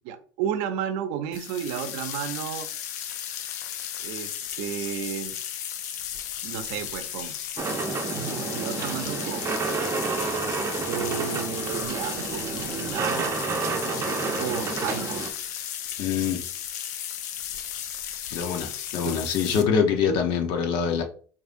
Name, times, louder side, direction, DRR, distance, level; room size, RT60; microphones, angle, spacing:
voice 1, 0.1-2.7 4.0-5.4 6.4-7.4 8.1-9.5 10.9-13.6 14.3-15.2 19.0-19.1 19.5-19.6 20.1-20.2, right 9 dB, 75° right, 0.6 m, -32 dB
sound 1, 1.3-19.6, left 9 dB, 90° left, 0.5 m, -35 dB
sound 2, 7.6-15.3, right 4 dB, 30° right, 0.7 m, -30 dB
voice 2, 16.0-16.4 18.3-21.0, left 7 dB, 65° left, 0.8 m, -24 dB
4.9 x 2.7 x 2.6 m
supercardioid pair, 95°, 9 cm